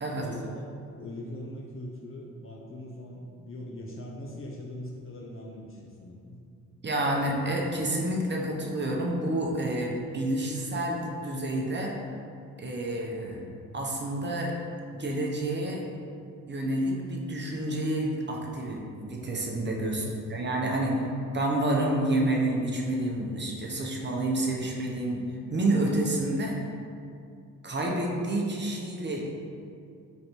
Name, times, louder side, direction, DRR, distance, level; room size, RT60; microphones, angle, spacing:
voice 1, 0.2-6.4 13.3-13.4 19.9-20.2, left 1 dB, 40° left, -2 dB, 0.6 m, -41 dB
voice 2, 6.8-11.9 12.6-13.4 13.7-14.5 14.9-15.8 16.5-20.0 20.3-21.0 21.3-25.2 25.5-26.6 27.6-29.3, right 1 dB, 30° right, -1 dB, 0.7 m, -29 dB
3.2 x 2.6 x 4.3 m, 2.4 s
cardioid pair, 65°, 35 cm